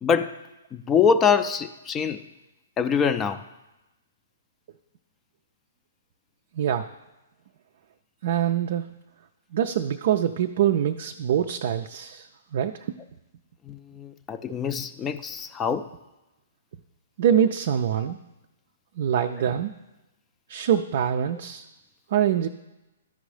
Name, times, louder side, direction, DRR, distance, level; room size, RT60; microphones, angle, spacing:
voice 1, 0.0-0.4 0.7-2.2 2.8-3.4 13.6-15.9 19.3-19.4, left 6 dB, 20° left, 10 dB, 0.4 m, -24 dB
voice 2, 6.5-6.9 8.2-8.9 9.5-12.9 17.2-18.2 19.0-19.7 20.5-21.6 22.1-22.5, right 9 dB, 55° right, 6 dB, 0.4 m, -24 dB
13.0 x 5.2 x 3.3 m, 0.99 s
figure-of-eight pair, 125°, 0 cm